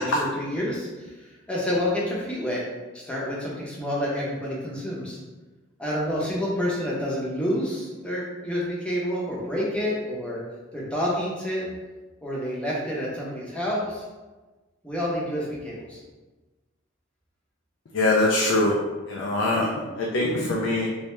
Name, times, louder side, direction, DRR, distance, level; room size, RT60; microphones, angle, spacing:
voice 1, 0.0-2.7 2.9-5.2 5.8-10.4 10.7-11.7 12.2-14.0 14.8-16.0, equal, 5° left, -6 dB, 0.7 m, -28 dB
voice 2, 17.9-18.8 19.1-19.7 20.0-20.9, left 2 dB, 65° left, -2 dB, 0.4 m, -22 dB
3.2 x 2.6 x 3.2 m, 1.2 s
head